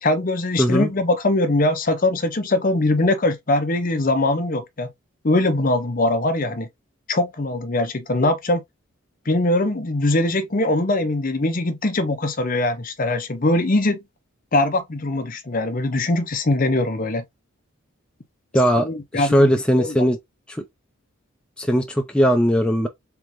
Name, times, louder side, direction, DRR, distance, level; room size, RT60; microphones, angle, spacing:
voice 1, 0.0-4.9 5.2-6.7 7.1-8.6 9.3-14.0 14.5-17.2 18.8-20.0, left 2 dB, 40° left, 0.7 m, -21 dB
voice 2, 0.6-0.9 18.5-20.2 20.5-20.6 21.6-22.9, equal, 5° left, 0.4 m, -19 dB
3.7 x 3.4 x 3.0 m
head